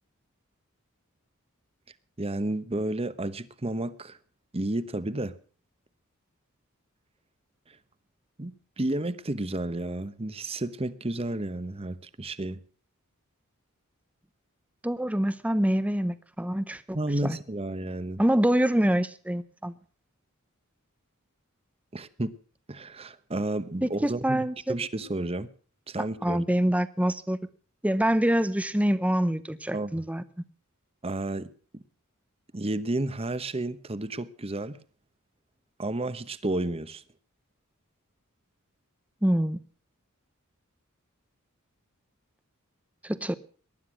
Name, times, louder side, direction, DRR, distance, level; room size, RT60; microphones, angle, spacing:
voice 1, 2.2-4.2 4.5-5.3 7.7-7.8 8.4-12.6 16.9-18.2 21.9-22.3 22.7-25.5 25.9-26.4 29.7-30.0 31.0-31.8 32.5-34.8 35.8-37.0, right 2 dB, 30° right, 1.0 m, -31 dB
voice 2, 14.8-17.0 17.2-17.4 18.2-19.7 23.8-24.7 26.2-27.4 27.8-30.2 39.2-39.6 43.0-43.4, right 1 dB, 5° right, 0.7 m, -25 dB
19.0 x 12.0 x 6.2 m
head